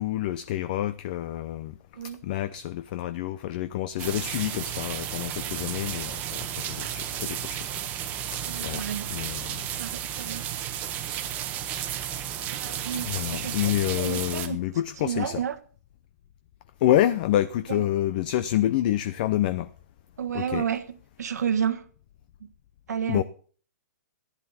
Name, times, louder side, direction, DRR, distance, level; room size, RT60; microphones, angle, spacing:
voice 1, 0.0-1.8 2.2-7.7 8.0-8.8 9.1-9.7 10.7-11.0 12.9-15.4 16.8-19.7 20.3-20.6 23.1-23.2, left 13 dB, 30° left, 0.6 m, -28 dB
sound 1, 4.0-14.5, right 10 dB, 20° right, 1.1 m, -33 dB
voice 2, 8.4-9.1 9.8-10.4 12.5-14.6 15.0-15.5 17.7-17.8 20.2-20.8 21.2-21.9 22.4-22.5 22.9-23.2, right 8 dB, 75° right, 1.6 m, -31 dB
14.5 x 10.5 x 4.3 m
hypercardioid pair, 170°, 9 cm